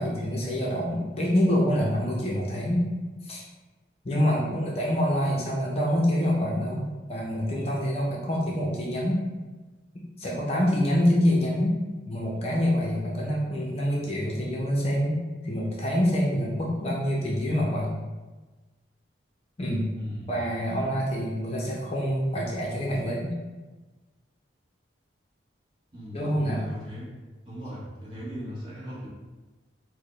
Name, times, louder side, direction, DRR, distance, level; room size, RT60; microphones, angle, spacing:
voice 1, 0.0-2.9 3.2-3.4 4.0-9.2 10.2-11.8 12.1-17.9 19.6-19.9 20.3-23.3 26.1-26.7, equal, 30° left, -4 dB, 0.5 m, -26 dB
voice 2, 19.9-20.3 25.9-27.1 27.4-29.1, equal, 25° right, -6 dB, 0.9 m, -38 dB
4.6 x 2.1 x 3.1 m, 1.2 s
head